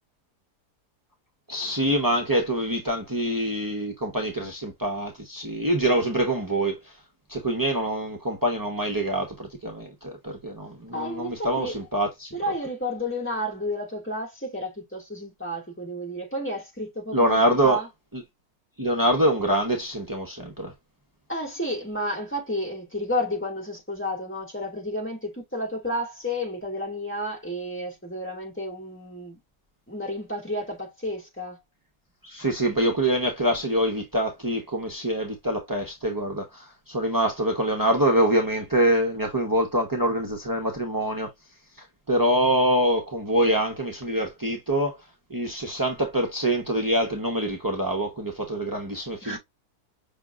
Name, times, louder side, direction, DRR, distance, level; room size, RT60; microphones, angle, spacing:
voice 1, 1.5-7.0 7.3-12.3 17.1-17.8 18.8-20.7 32.2-41.3 41.8-49.4, right 1 dB, 20° right, 0.5 m, -25 dB
voice 2, 10.9-11.8 12.3-17.9 21.3-29.4 29.9-31.6 49.2-49.4, equal, 5° left, 2.2 m, -31 dB
5.9 x 3.4 x 2.3 m
omnidirectional pair, 1.9 m